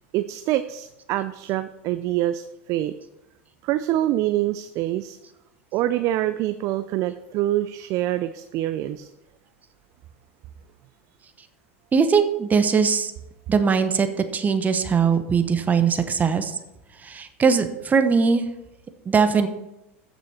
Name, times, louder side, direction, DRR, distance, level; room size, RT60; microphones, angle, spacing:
voice 1, 0.1-2.9 3.6-5.2 5.7-9.1, right 13 dB, 45° right, 11 dB, 0.5 m, -25 dB
voice 2, 11.9-13.1 13.5-14.1 14.3-16.6 17.0-18.4 19.0-19.5, right 5 dB, 20° right, 8 dB, 1.1 m, -20 dB
15.0 x 6.2 x 4.4 m, 0.93 s
hypercardioid pair, 85°, 7 cm